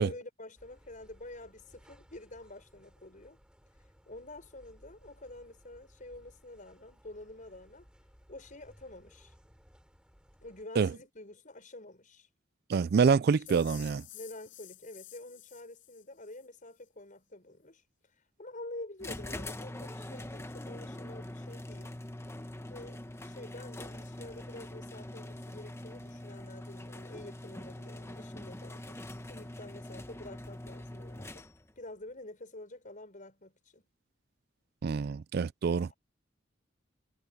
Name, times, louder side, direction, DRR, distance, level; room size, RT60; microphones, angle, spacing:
voice 1, 0.0-3.4 4.1-7.9 8.3-9.3 10.4-12.3 13.5-13.7 14.1-17.8 18.4-22.0 22.7-29.0 29.3-31.5 31.8-33.9 35.8-35.9, left 2 dB, 45° left, 6.3 m, -48 dB
sound 1, 0.6-10.6, equal, 5° right, 6.0 m, -61 dB
voice 2, 12.7-14.0 34.8-35.9, right 5 dB, 55° right, 0.4 m, -26 dB
sound 2, 13.5-16.5, left 15 dB, 75° left, 7.2 m, -52 dB
sound 3, 19.0-31.8, left 1 dB, 15° left, 1.1 m, -43 dB
head